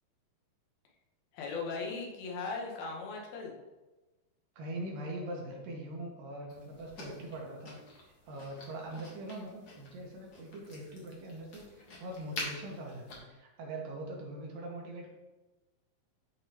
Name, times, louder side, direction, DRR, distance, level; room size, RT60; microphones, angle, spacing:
voice 1, 1.3-3.6, left 4 dB, 90° left, -1 dB, 3.0 m, -38 dB
voice 2, 4.6-8.0 8.3-15.1, right 1 dB, 75° right, -1 dB, 2.8 m, -42 dB
sound 1, 6.5-13.2, left 2 dB, 65° left, 1.1 m, -47 dB
11.5 x 3.9 x 2.9 m, 1.1 s
omnidirectional pair, 4.1 m